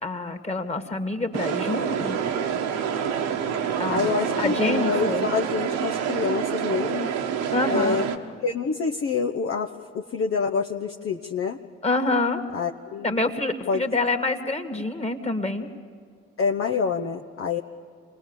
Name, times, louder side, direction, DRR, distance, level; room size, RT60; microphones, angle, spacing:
voice 1, 0.0-2.2 3.8-4.1 4.4-5.3 7.5-8.0 11.8-12.4 13.0-15.7, left 2 dB, 20° left, 6 dB, 2.4 m, -26 dB
sound 1, 1.3-8.2, right 8 dB, 70° right, 1.4 m, -27 dB
voice 2, 3.9-7.1 7.7-8.0 8.4-11.6 12.5-13.1 13.7-13.9 16.4-17.6, left 5 dB, 45° left, 3 dB, 1.1 m, -27 dB
29.0 x 20.0 x 7.4 m, 2.2 s
figure-of-eight pair, 45°, 30 cm